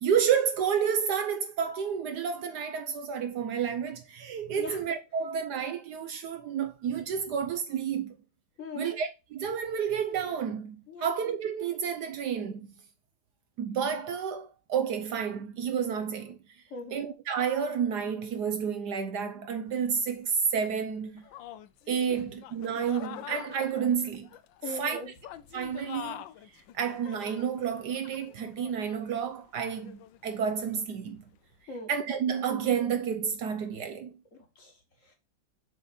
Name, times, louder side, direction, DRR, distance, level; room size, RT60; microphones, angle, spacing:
voice 1, 0.0-8.2 8.8-12.7 13.6-16.4 16.9-21.2 21.9-24.3 24.7-25.0 25.5-26.3 26.7-31.3 31.9-34.1, right 7 dB, 70° right, 1.1 m, -30 dB
voice 2, 8.6-9.0 10.9-11.1 16.7-17.0 22.1-22.2 24.6-25.1 31.7-31.9 34.3-35.1, left 3 dB, 45° left, 1.7 m, -41 dB
sound 1, 19.7-19.8 20.5-20.6 21.2-31.0, left 12 dB, 80° left, 1.3 m, -46 dB
6.8 x 4.1 x 4.1 m
omnidirectional pair, 2.1 m